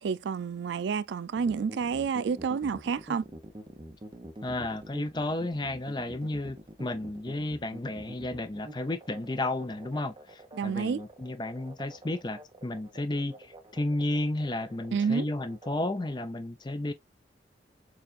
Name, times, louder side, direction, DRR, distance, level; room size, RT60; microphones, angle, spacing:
voice 1, 0.0-3.2 10.5-11.0 14.9-15.3, right 6 dB, 85° right, 0.3 m, -29 dB
sound 1, 1.3-16.2, right 1 dB, 25° right, 0.9 m, -47 dB
voice 2, 4.4-16.9, left 2 dB, 25° left, 0.5 m, -33 dB
6.9 x 2.4 x 2.5 m
head